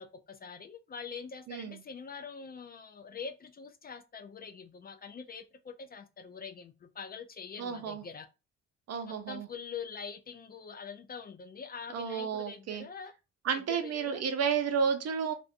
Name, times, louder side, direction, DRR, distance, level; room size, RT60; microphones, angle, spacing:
voice 1, 0.0-8.3 9.1-13.1 13.7-14.2, left 6 dB, 30° left, 0.4 m, -44 dB
voice 2, 1.5-1.8 7.6-8.0 8.9-9.5 11.9-12.9 13.4-15.3, right 6 dB, 55° right, 0.6 m, -32 dB
2.5 x 2.1 x 2.5 m
cardioid pair, 90°, 30 cm